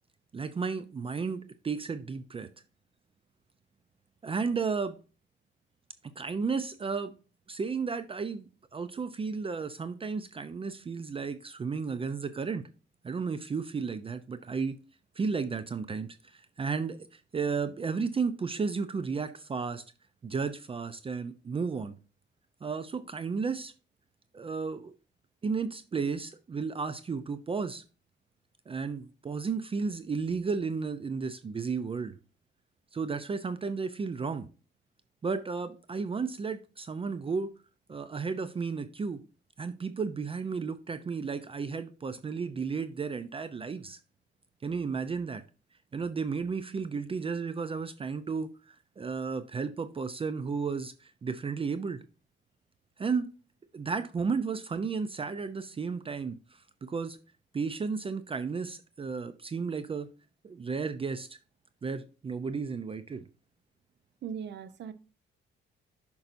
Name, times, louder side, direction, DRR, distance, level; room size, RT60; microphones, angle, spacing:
voice 1, 0.3-2.5 4.2-5.0 6.2-7.1 7.5-12.7 13.0-14.8 15.2-19.8 20.2-22.0 22.6-23.7 24.3-24.9 25.4-27.8 28.7-32.1 32.9-34.5 35.2-37.5 37.9-39.2 39.6-44.0 44.6-45.4 45.9-52.0 53.0-53.3 53.7-57.2 57.5-60.1 60.4-61.3 61.8-63.3, right 5 dB, 30° right, 0.5 m, -33 dB
voice 2, 64.2-64.9, right 7 dB, 60° right, 0.7 m, -38 dB
8.9 x 5.5 x 2.6 m
cardioid pair, 90°, 20 cm